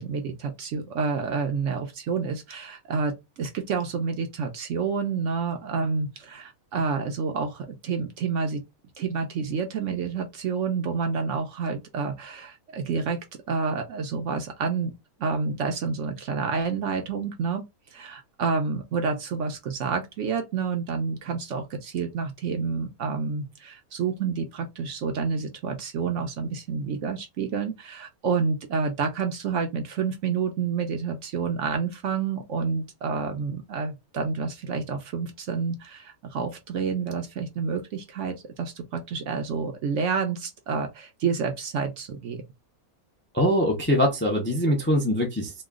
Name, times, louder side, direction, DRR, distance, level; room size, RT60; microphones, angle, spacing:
voice 1, 0.0-8.6 9.0-13.2 13.5-14.9 15.2-17.6 17.9-42.4, right 5 dB, 65° right, 0.8 m, -29 dB
voice 2, 43.3-45.6, equal, 15° left, 0.4 m, -23 dB
3.0 x 2.2 x 3.5 m
omnidirectional pair, 1.6 m